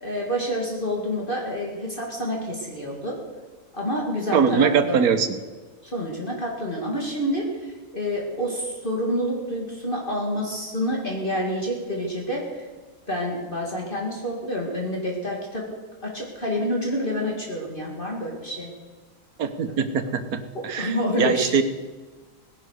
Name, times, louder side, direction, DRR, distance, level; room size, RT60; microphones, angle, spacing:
voice 1, 0.0-3.2 3.7-5.0 5.8-12.6 13.1-15.7 16.0-18.7 20.5-21.5, equal, 35° left, -1 dB, 2.5 m, -28 dB
voice 2, 4.3-5.3 19.4-21.6, right 6 dB, 80° right, 9 dB, 1.6 m, -22 dB
18.5 x 10.5 x 6.5 m, 1.4 s
omnidirectional pair, 1.5 m